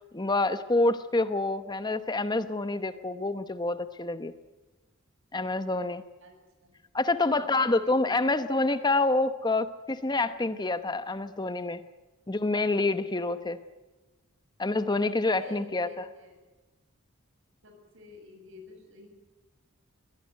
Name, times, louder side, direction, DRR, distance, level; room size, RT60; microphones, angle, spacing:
voice 1, 0.1-4.3 5.3-6.0 6.9-11.8 12.3-13.6 14.6-16.0, left 2 dB, 20° left, 11 dB, 0.9 m, -27 dB
voice 2, 7.2-8.5 15.1-16.4 17.6-19.1, left 1 dB, 65° right, 5 dB, 7.2 m, -50 dB
22.5 x 18.0 x 9.1 m, 1.2 s
head